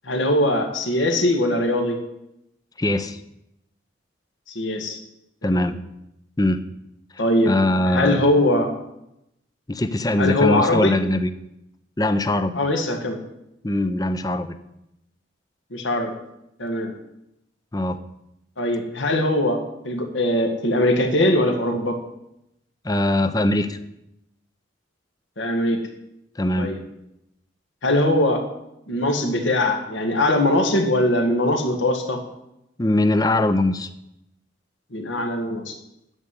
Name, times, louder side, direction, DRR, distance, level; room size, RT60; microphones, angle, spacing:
voice 1, 0.0-2.0 4.6-5.0 5.4-5.7 7.2-7.5 7.9-8.7 10.2-11.0 12.5-13.2 15.7-16.1 16.6-16.9 18.6-19.6 19.8-22.0 25.4-25.8 26.6-26.8 27.8-28.4 28.9-32.2 34.9-35.7, left 1 dB, 75° left, 4 dB, 2.0 m, -21 dB
voice 2, 2.8-3.2 5.4-5.8 6.4-6.6 7.1-8.2 9.7-11.3 12.0-12.6 13.6-14.5 17.7-18.0 22.8-23.8 26.4-26.7 32.8-33.9, left 1 dB, 20° left, 10 dB, 0.6 m, -21 dB
11.0 x 7.9 x 8.4 m, 0.85 s
head